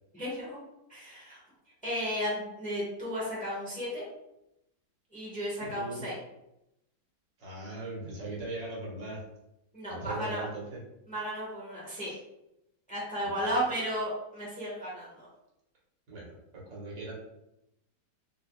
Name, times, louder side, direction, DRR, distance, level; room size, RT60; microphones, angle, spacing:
voice 1, 0.1-0.6 0.9-1.4 1.8-4.0 5.1-6.2 9.7-10.4 11.1-12.1 12.9-15.3, equal, 5° left, -7 dB, 1.2 m, -34 dB
voice 2, 5.6-6.1 7.4-9.2 9.9-10.8 12.0-12.2 13.2-13.6 16.1-16.3 16.7-17.1, right 2 dB, 85° right, -5 dB, 2.0 m, -39 dB
4.0 x 3.9 x 2.3 m, 0.86 s
omnidirectional pair, 1.9 m